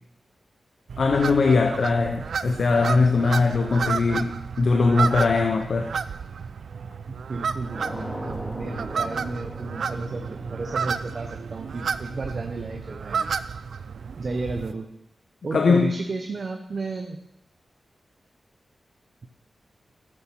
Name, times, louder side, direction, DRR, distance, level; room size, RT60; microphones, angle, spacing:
sound 1, 0.9-14.7, right 6 dB, 85° right, 0.4 m, -31 dB
voice 1, 1.0-5.9 15.5-15.9, left 4 dB, 65° left, 5 dB, 0.8 m, -21 dB
voice 2, 7.1-13.3 14.2-14.9 15.4-17.2, right 3 dB, 50° right, 4 dB, 0.9 m, -33 dB
sound 2, 7.7-12.4, equal, 10° left, 2.2 m, -39 dB
13.0 x 7.2 x 6.1 m, 0.81 s
wide cardioid pair, 120°, 0 cm